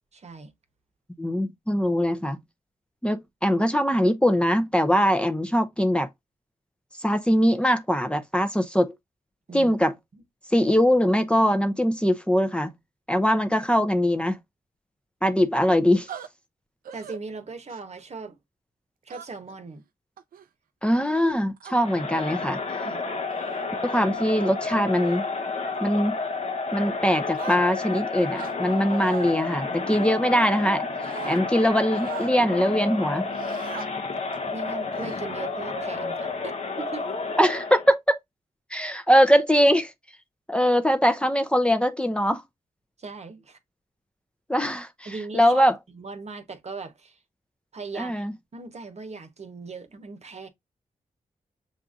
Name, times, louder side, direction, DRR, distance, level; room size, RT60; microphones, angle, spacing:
voice 1, 0.1-0.5 9.5-9.8 10.1-10.2 16.9-18.4 19.0-19.8 22.8-23.0 34.5-37.0 43.0-43.6 45.0-47.2 47.7-48.2 48.5-50.5, right 4 dB, 50° right, 1.0 m, -39 dB
voice 2, 1.2-2.4 3.0-6.1 7.0-8.9 9.5-9.9 10.5-12.7 13.1-14.4 15.2-16.1 20.8-22.6 23.8-25.2 25.8-26.2 26.7-30.9 31.3-33.3 37.4-38.2 38.7-39.9 40.5-42.4 44.5-45.1 45.3-45.8 48.0-48.3, equal, 5° left, 0.7 m, -22 dB
sound 1, 16.1-16.3 16.8-17.2 17.7-18.0 19.1-19.5 20.2-20.5 21.2-21.8 22.6-22.8 23.3-23.7 24.1-24.4 24.9-25.2 25.7-26.0 27.3-28.0 28.3-29.3 29.9-30.7 31.0-31.4 31.9-32.3 33.3-33.9 34.3-34.5 34.9-35.6, right 8 dB, 85° right, 0.5 m, -42 dB
Crowd, 21.8-37.9, left 4 dB, 50° left, 1.0 m, -31 dB
6.8 x 2.5 x 2.4 m
cardioid pair, 45°, 14 cm